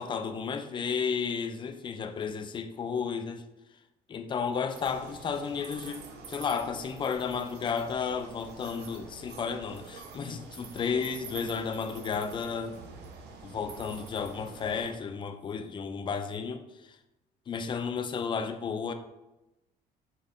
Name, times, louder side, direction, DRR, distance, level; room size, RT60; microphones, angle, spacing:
voice 1, 0.0-3.4 4.1-6.0 6.3-12.7 13.4-16.6 17.5-18.9, left 6 dB, 30° left, 8 dB, 0.4 m, -33 dB
sound 1, 4.7-14.9, right 5 dB, 80° right, 0.7 m, -47 dB
5.1 x 4.1 x 2.5 m, 0.98 s
cardioid pair, 110°, 17 cm